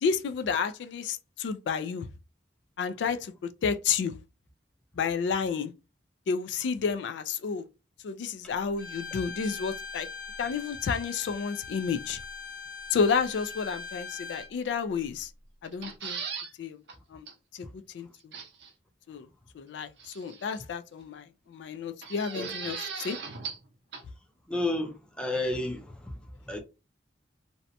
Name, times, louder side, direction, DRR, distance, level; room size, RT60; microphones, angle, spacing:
voice 1, 0.0-2.1 2.8-4.1 4.9-5.7 6.3-7.6 8.0-10.1 10.4-12.2 12.9-15.3 15.6-16.2 16.6-16.8 17.1-17.3 17.5-18.4 19.1-19.3 19.5-23.2, left 6 dB, 75° left, 0.3 m, -31 dB
Bowed string instrument, 8.8-14.5, left 4 dB, 50° left, 0.9 m, -41 dB
sound 1, 15.6-16.5 16.9-17.0 17.3-17.4 18.3-18.7 20.0-20.6 22.0-23.7 23.9-24.0, right 6 dB, 70° right, 0.6 m, -38 dB
voice 2, 24.5-25.9 26.5-26.6, left 2 dB, 5° left, 0.4 m, -30 dB
2.6 x 2.1 x 2.6 m
head